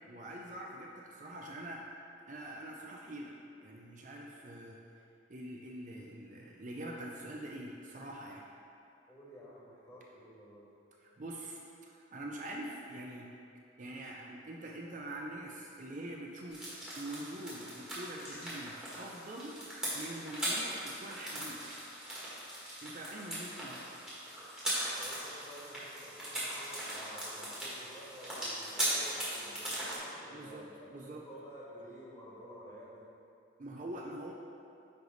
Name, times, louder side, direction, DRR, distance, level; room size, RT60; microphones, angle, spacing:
voice 1, 0.1-1.8 2.3-4.8 5.3-8.5 11.2-11.6 11.9-13.3 13.8-19.6 19.9-21.8 22.8-23.9 30.3-30.7 30.9-31.3 33.6-34.3, right 1 dB, 40° right, -1 dB, 0.5 m, -44 dB
voice 2, 9.1-10.7 25.0-33.0, equal, 20° left, -9 dB, 1.6 m, -51 dB
sound 1, 16.5-30.0, right 1 dB, 5° right, 1.6 m, -39 dB
9.6 x 3.3 x 3.9 m, 2.5 s
head